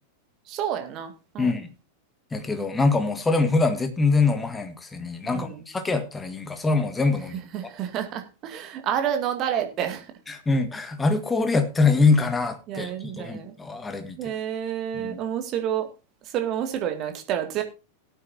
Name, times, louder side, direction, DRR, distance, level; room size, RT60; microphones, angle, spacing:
voice 1, 0.5-1.6 5.2-5.7 7.3-10.1 12.7-13.5 14.2-15.9 16.2-17.6, right 9 dB, 35° right, 2.2 m, -29 dB
voice 2, 1.4-1.7 2.3-7.4 10.3-14.2 14.9-15.2, left 3 dB, 10° left, 1.7 m, -24 dB
18.0 x 9.0 x 2.8 m
figure-of-eight pair, 90°, 0 cm